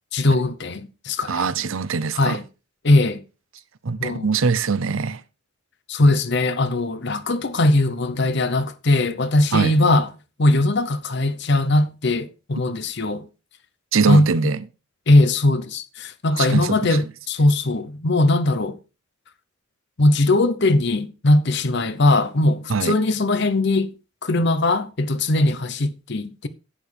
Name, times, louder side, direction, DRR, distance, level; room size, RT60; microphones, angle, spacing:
voice 1, 0.1-1.5 2.1-2.4 2.8-3.2 4.0-4.3 5.9-10.1 10.4-13.3 14.1-14.3 15.1-18.8 20.0-23.9 24.2-26.5, left 2 dB, 55° left, 0.8 m, -20 dB
voice 2, 1.3-2.4 3.8-5.2 9.5-9.7 13.9-14.6 16.3-17.0 22.7-23.0, right 5 dB, 75° right, 0.7 m, -22 dB
11.0 x 8.6 x 3.4 m
head